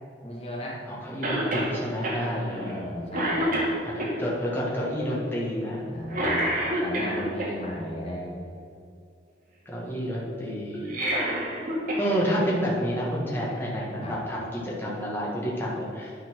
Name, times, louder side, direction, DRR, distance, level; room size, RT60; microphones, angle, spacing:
voice 1, 0.2-0.8 2.1-3.6 5.9-8.3 14.0-14.1, left 1 dB, 35° left, -4 dB, 1.6 m, -35 dB
voice 2, 0.9-2.7 3.8-5.9 9.6-10.9 12.0-16.1, equal, 15° left, -6 dB, 1.6 m, -29 dB
Cough, 1.2-1.7 2.0-2.2 2.7-2.8 3.1-4.1 6.1-7.5 10.7-12.0 12.4-12.5 13.6-13.7, right 1 dB, 50° right, 1.9 m, -27 dB
10.5 x 4.4 x 6.1 m, 2.5 s
head